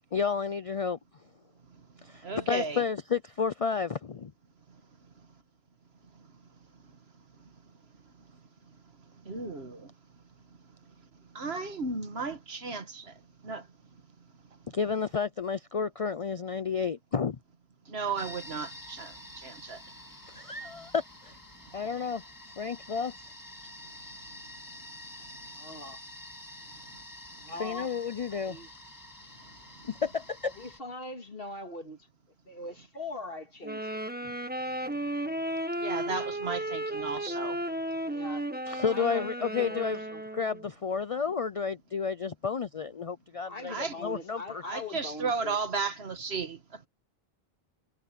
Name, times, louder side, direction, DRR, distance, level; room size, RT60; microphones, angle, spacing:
voice 1, 0.1-1.0 2.0-4.3 14.7-17.4 20.3-21.3 21.7-22.2 22.6-23.3 27.6-28.6 30.0-30.5 38.7-40.0 40.3-44.6, left 6 dB, 40° left, 0.6 m, -31 dB
voice 2, 1.6-2.9 4.7-5.3 6.0-7.0 7.3-7.7 8.0-9.9 10.6-14.0 14.5-15.2 17.9-19.8 20.3-20.7 21.7-22.1 22.9-23.0 23.6-24.6 24.9-25.9 26.7-27.0 27.3-27.8 29.4-30.2 32.8-32.9 34.7-35.4 35.8-37.6 43.7-44.0 44.6-46.9, right 4 dB, 85° right, 1.9 m, -38 dB
sound 1, 18.2-30.8, left 1 dB, 20° left, 2.0 m, -48 dB
voice 3, 25.5-26.0 27.4-28.0 28.3-28.7 30.5-32.1 32.5-34.4 35.1-35.4 38.0-40.2 41.2-41.4 43.4-45.6, left 2 dB, 65° left, 2.7 m, -42 dB
sound 2, 33.6-40.7, right 1 dB, 10° right, 1.4 m, -34 dB
omnidirectional pair, 1.0 m